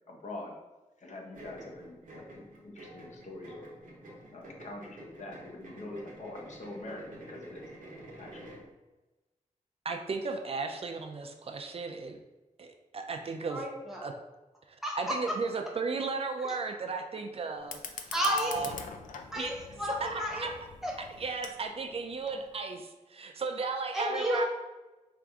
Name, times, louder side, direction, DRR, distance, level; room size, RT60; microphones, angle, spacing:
voice 1, 0.1-0.6 1.0-3.7 4.3-7.7 8.2-8.4, left 2 dB, 65° left, 0 dB, 0.8 m, -44 dB
sound 1, 1.3-8.7, right 1 dB, 85° right, 0.9 m, -49 dB
voice 2, 9.9-12.2 12.6-13.6 14.0-14.1 14.7-18.7 19.4-19.5 20.0-20.5 21.2-24.5, right 4 dB, 50° right, 4 dB, 0.3 m, -35 dB
voice 3, 13.5-14.1 14.8-15.4 16.4-16.5 18.1-18.6 19.3-20.5 20.8-21.0 23.9-24.5, equal, 5° right, -3 dB, 0.9 m, -32 dB
Fire, 17.6-22.6, left 6 dB, 85° left, 0.4 m, -45 dB
4.6 x 2.5 x 3.5 m, 1.1 s
wide cardioid pair, 145°, 13 cm